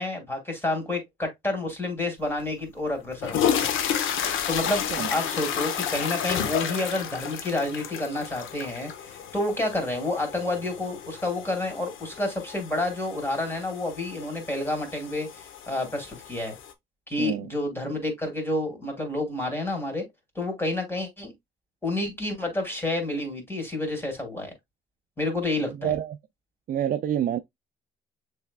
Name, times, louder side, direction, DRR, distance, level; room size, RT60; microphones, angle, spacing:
voice 1, 0.0-3.5 4.5-16.6 17.1-20.0 20.3-21.3 21.8-24.5 25.2-25.9, left 2 dB, 10° left, 2.5 m, -29 dB
sound 1, 2.4-2.5 3.1-16.7, left 8 dB, 85° left, 0.8 m, -32 dB
voice 2, 17.2-17.5 25.7-26.2 26.7-27.4, right 10 dB, 45° right, 0.4 m, -27 dB
6.9 x 3.4 x 2.2 m
cardioid pair, 90°, 20 cm